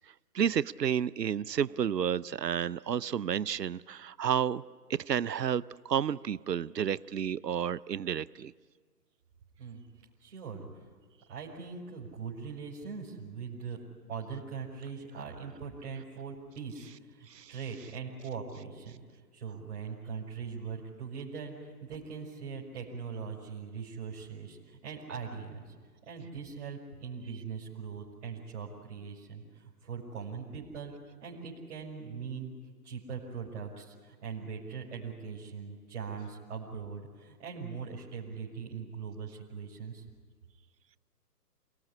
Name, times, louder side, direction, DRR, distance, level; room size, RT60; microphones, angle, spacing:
voice 1, 0.3-4.6 4.9-8.5 17.3-17.5, right 8 dB, 80° right, 20 dB, 0.8 m, -31 dB
voice 2, 10.2-10.9 11.3-13.8 14.1-25.6 26.1-30.9 31.2-40.0, right 6 dB, 45° right, -4 dB, 5.4 m, -41 dB
28.0 x 19.0 x 10.0 m, 1.5 s
figure-of-eight pair, 130°, 48 cm